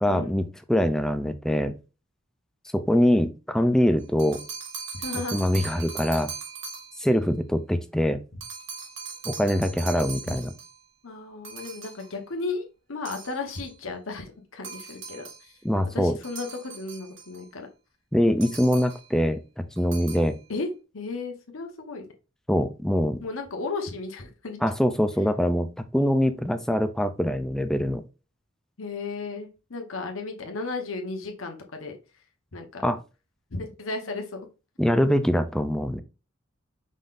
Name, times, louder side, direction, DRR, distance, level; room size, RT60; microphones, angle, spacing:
voice 1, 0.0-1.8 2.7-4.4 5.3-6.3 7.0-8.2 9.3-10.5 15.6-16.2 18.1-20.4 22.5-23.2 24.6-28.0 32.8-33.0 34.8-36.0, equal, 5° left, 10 dB, 0.4 m, -23 dB
sound 1, 4.0-7.1 8.4-10.8 11.4-12.1 13.1-13.7 14.6-15.5 16.2-17.5 18.4-19.1 19.8-20.3, right 5 dB, 60° right, 1.5 m, -40 dB
voice 2, 4.9-5.4 10.3-10.4 11.0-15.5 15.9-17.7 20.5-20.7 20.9-22.0 23.2-24.6 28.8-32.0 32.5-32.9 33.5-34.4, left 3 dB, 75° left, 3 dB, 1.1 m, -34 dB
5.3 x 3.8 x 2.5 m, 0.31 s
head